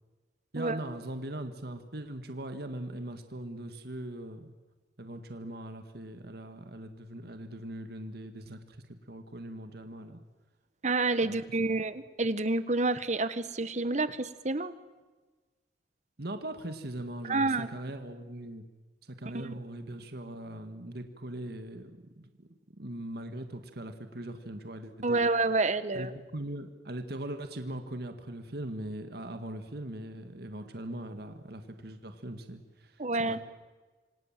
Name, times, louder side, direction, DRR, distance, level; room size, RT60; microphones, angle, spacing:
voice 1, 0.5-4.5 5.0-8.8 9.0-10.2 11.2-11.3 11.6-11.7 16.2-18.6 19.0-22.5 22.8-25.2 25.9-33.4, right 1 dB, 60° right, 7 dB, 1.9 m, -40 dB
voice 2, 10.8-14.7 17.3-17.7 19.3-19.5 25.0-26.1 33.0-33.4, right 3 dB, 40° right, 13 dB, 1.3 m, -28 dB
27.0 x 26.0 x 7.5 m, 1.3 s
head